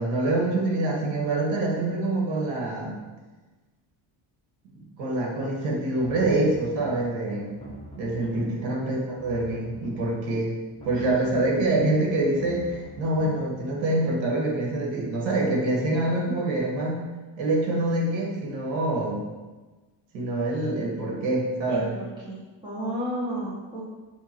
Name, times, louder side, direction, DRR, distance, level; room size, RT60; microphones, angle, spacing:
voice 1, 0.0-3.0 4.8-7.6 8.0-10.5 10.8-17.0 17.4-19.2 20.1-21.9, right 2 dB, 80° right, -1 dB, 1.7 m, -25 dB
sound 1, 6.0-7.1 7.4-8.7 9.0-10.3 10.6-13.5, equal, 15° left, 1.1 m, -44 dB
voice 2, 21.7-22.4 22.6-23.8, equal, 10° right, -11 dB, 1.5 m, -32 dB
6.8 x 3.5 x 4.5 m, 1.2 s
cardioid pair, 135°, 46 cm